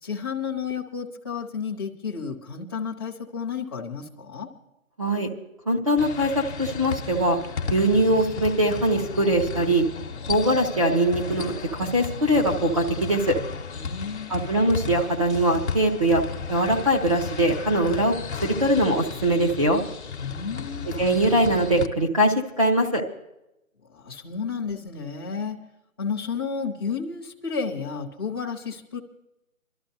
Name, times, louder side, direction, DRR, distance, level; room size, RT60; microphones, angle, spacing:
voice 1, 0.0-4.5 13.7-14.3 20.2-20.9 23.9-25.6 26.0-29.0, left 6 dB, 15° left, -5 dB, 0.8 m, -32 dB
voice 2, 5.0-5.3 5.7-7.4 7.7-9.9 10.3-13.4 14.3-16.2 16.5-18.1 18.4-19.8 20.9-23.0, right 1 dB, 25° right, -1 dB, 0.7 m, -22 dB
sound 1, 6.0-21.9, left 5 dB, 50° left, 1.0 m, -34 dB
25.0 x 13.0 x 2.6 m, 0.89 s
hypercardioid pair, 170°, 42 cm